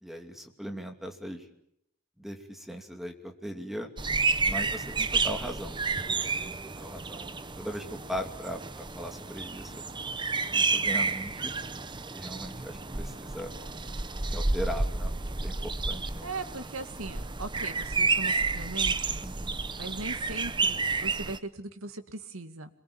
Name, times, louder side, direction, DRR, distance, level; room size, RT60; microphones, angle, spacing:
voice 1, 0.0-1.5 2.2-3.9 4.4-5.8 6.1-7.3 7.6-9.8 10.5-11.5 12.1-13.5 14.3-15.1 15.4-16.3 19.2-19.6, equal, ahead, 3 dB, 2.8 m, -39 dB
sound 1, 4.0-21.4, right 4 dB, 20° right, 1.0 m, -31 dB
voice 2, 16.2-19.2 19.8-22.7, right 3 dB, 90° right, 8 dB, 2.3 m, -39 dB
27.5 x 22.0 x 8.8 m, 0.75 s
head